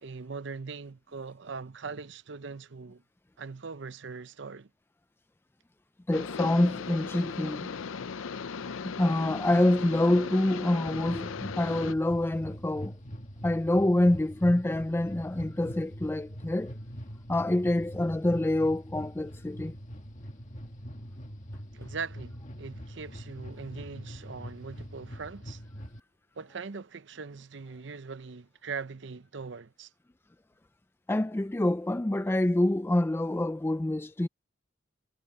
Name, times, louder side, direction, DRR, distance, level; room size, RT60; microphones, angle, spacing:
voice 1, 0.0-3.0 3.4-4.7 21.7-25.6 26.4-29.9, right 5 dB, 60° right, 0.7 m, -41 dB
sound 1, 6.1-11.9, left 5 dB, 90° left, 0.6 m, -37 dB
voice 2, 6.1-7.7 8.8-12.9 13.4-16.8 17.3-19.7 31.1-34.3, left 1 dB, 10° left, 0.3 m, -26 dB
sound 2, 10.9-26.0, equal, 40° left, 1.9 m, -43 dB
head